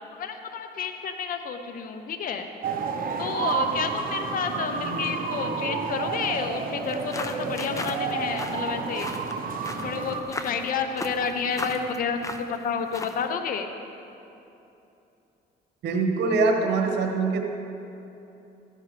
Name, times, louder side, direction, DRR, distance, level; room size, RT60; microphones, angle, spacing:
voice 1, 0.1-2.5 3.2-9.1 9.8-13.7, left 6 dB, 55° left, 7 dB, 0.6 m, -30 dB
sound 1, 2.6-10.2, right 5 dB, 55° right, 0.9 m, -30 dB
sound 2, 6.8-13.3, left 2 dB, 20° left, 0.7 m, -38 dB
voice 2, 15.8-17.4, right 3 dB, 80° right, 2 dB, 1.4 m, -24 dB
14.0 x 9.9 x 3.2 m, 2.9 s
cardioid pair, 100°, 17 cm